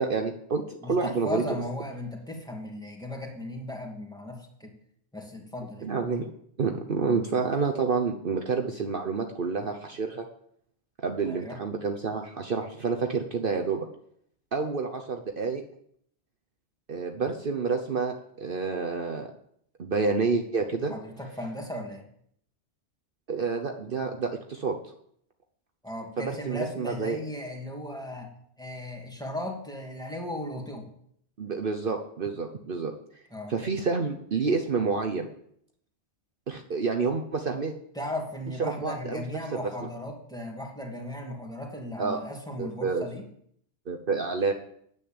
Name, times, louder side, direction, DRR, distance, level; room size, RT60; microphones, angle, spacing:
voice 1, 0.0-0.6 0.9-1.4 5.8-6.3 6.6-10.2 11.0-13.9 14.5-15.6 16.9-19.3 19.8-20.9 23.3-24.8 26.2-27.2 31.4-32.9 33.5-35.3 36.5-37.7 38.6-39.2 39.5-39.6 42.0-42.2 42.6-43.0 43.9-44.5, right 4 dB, 50° right, 4 dB, 1.1 m, -28 dB
voice 2, 0.8-4.7 5.1-5.9 11.2-11.6 20.9-22.1 25.8-28.3 28.6-30.9 33.3-33.5 37.9-43.3, left 1 dB, 5° left, 1 dB, 2.4 m, -36 dB
10.0 x 8.4 x 8.8 m, 0.68 s
omnidirectional pair, 1.2 m